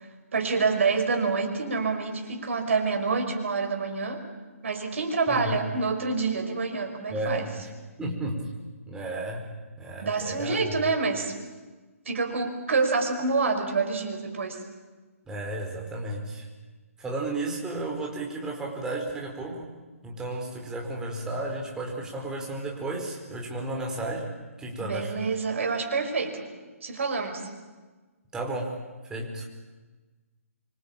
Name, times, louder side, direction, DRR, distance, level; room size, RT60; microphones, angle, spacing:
voice 1, 0.3-4.3 4.6-7.5 10.0-11.3 12.1-14.6 24.8-26.5 26.8-27.5, right 4 dB, 55° right, 5 dB, 5.6 m, -27 dB
voice 2, 8.0-8.4 8.9-9.4 9.8-10.7 15.3-16.5 17.0-19.8 20.0-25.2 28.3-28.8 29.1-29.5, right 2 dB, 10° right, 0 dB, 4.8 m, -33 dB
26.0 x 25.0 x 8.9 m, 1.3 s
figure-of-eight pair, 135°, 8 cm